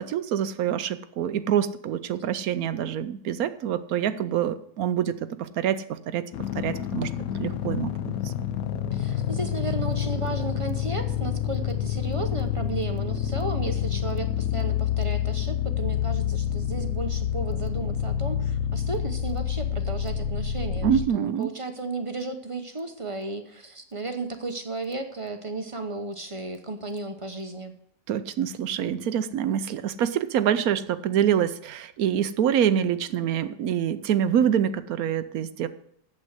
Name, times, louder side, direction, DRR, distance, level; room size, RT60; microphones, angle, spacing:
voice 1, 0.0-6.2 6.5-7.1 7.4-8.3 20.8-21.5 28.1-35.7, right 9 dB, 70° right, 13 dB, 1.1 m, -26 dB
sound 1, 6.3-21.1, left 9 dB, 70° left, 1.1 m, -28 dB
voice 2, 8.9-27.8, right 3 dB, 30° right, 7 dB, 0.7 m, -34 dB
8.9 x 7.7 x 8.0 m, 0.71 s
omnidirectional pair, 1.7 m